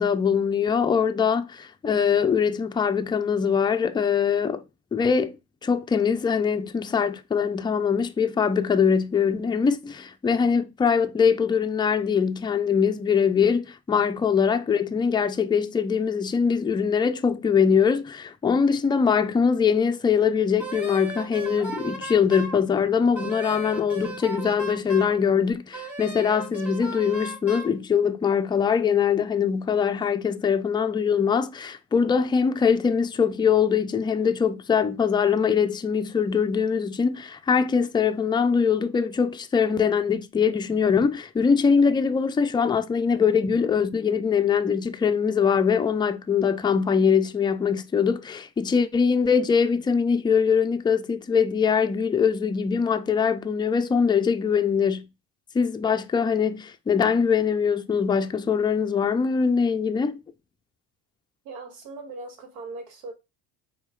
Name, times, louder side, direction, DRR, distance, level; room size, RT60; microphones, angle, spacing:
voice 1, 0.0-4.6 4.9-5.4 5.6-55.1 55.5-60.2, left 6 dB, 10° left, 0.3 m, -22 dB
Wind instrument woodwind instrument, 20.6-22.6 23.1-25.2 25.7-27.7, right 2 dB, 5° right, 1.6 m, -36 dB
voice 2, 61.4-63.1, right 3 dB, 80° right, 1.6 m, -39 dB
4.5 x 3.1 x 3.7 m
supercardioid pair, 90°, 41 cm